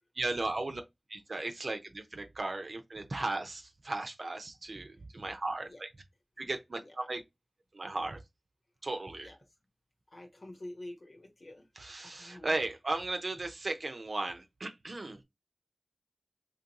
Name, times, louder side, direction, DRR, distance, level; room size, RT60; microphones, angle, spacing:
voice 1, 0.2-0.8 1.1-5.9 6.4-7.2 7.7-8.2 8.8-9.3 11.8-15.2, right 2 dB, 65° right, 0.7 m, -36 dB
voice 2, 10.1-11.6 12.0-12.5, left 1 dB, 65° left, 1.2 m, -47 dB
3.9 x 2.9 x 2.9 m
cardioid pair, 40°, 0 cm